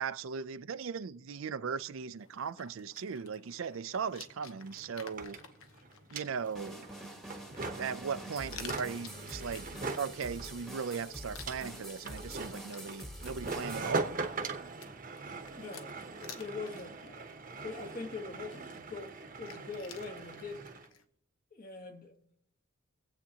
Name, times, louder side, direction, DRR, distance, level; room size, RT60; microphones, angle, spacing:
voice 1, 0.0-5.4 6.1-6.9 7.8-9.7 10.0-14.1, right 6 dB, 70° right, 0.5 m, -38 dB
sound 1, 2.2-21.0, left 6 dB, 85° left, 1.0 m, -54 dB
sound 2, 4.0-4.1 4.3-20.9, right 3 dB, 40° right, 0.9 m, -42 dB
sound 3, 6.5-13.9, right 1 dB, ahead, 1.2 m, -46 dB
voice 2, 15.5-20.7 21.5-22.1, left 4 dB, 45° left, 1.3 m, -43 dB
23.0 x 8.1 x 2.9 m
head